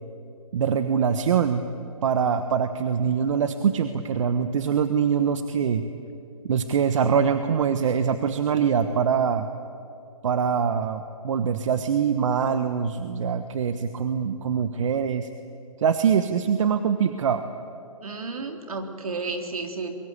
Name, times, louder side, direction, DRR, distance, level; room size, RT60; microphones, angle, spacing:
voice 1, 0.5-1.6 2.0-5.8 6.4-9.5 10.2-15.3 15.8-17.4, right 7 dB, 60° right, 9 dB, 1.3 m, -23 dB
voice 2, 18.0-20.0, right 3 dB, 80° right, 5 dB, 3.9 m, -32 dB
23.5 x 23.0 x 8.4 m, 2.8 s
hypercardioid pair, 150°, 18 cm